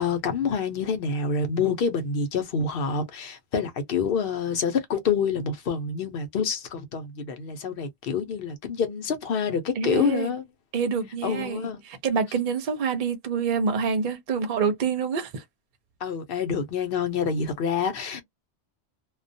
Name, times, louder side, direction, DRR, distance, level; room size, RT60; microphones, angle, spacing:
voice 1, 0.0-10.4 11.2-11.8 16.0-18.2, left 6 dB, 60° left, 0.8 m, -27 dB
voice 2, 9.8-10.3 10.7-11.7 12.0-15.4, right 6 dB, 55° right, 0.7 m, -26 dB
2.3 x 2.2 x 2.6 m
omnidirectional pair, 1.1 m